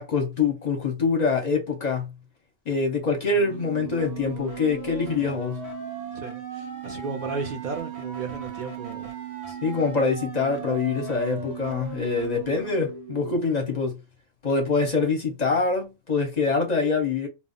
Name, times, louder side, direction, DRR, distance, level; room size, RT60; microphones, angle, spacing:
voice 1, 0.0-2.1 2.7-5.6 9.6-14.0 14.4-17.3, left 4 dB, 45° left, 0.6 m, -25 dB
voice 2, 3.3-3.7 6.1-9.1 12.6-12.7, right 4 dB, 65° right, 0.4 m, -35 dB
sound 1, 3.4-13.4, right 7 dB, 35° right, 0.8 m, -37 dB
2.2 x 2.0 x 3.7 m
omnidirectional pair, 1.4 m